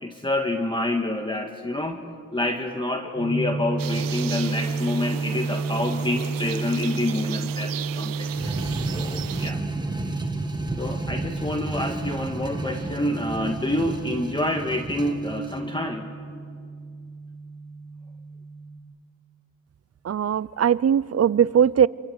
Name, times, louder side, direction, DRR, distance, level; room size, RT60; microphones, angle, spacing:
voice 1, 0.0-2.0 2.3-9.6 10.8-16.1, left 1 dB, 15° left, 4 dB, 1.8 m, -27 dB
sound 1, 3.2-18.8, right 3 dB, 30° right, 2.9 m, -32 dB
sound 2, 3.8-9.5, right 12 dB, 80° right, 0.7 m, -36 dB
sound 3, 8.3-15.6, right 1 dB, 15° right, 2.2 m, -33 dB
voice 2, 20.0-21.9, right 8 dB, 45° right, 20 dB, 0.6 m, -20 dB
27.0 x 24.0 x 8.1 m, 2.2 s
cardioid pair, 70°, 33 cm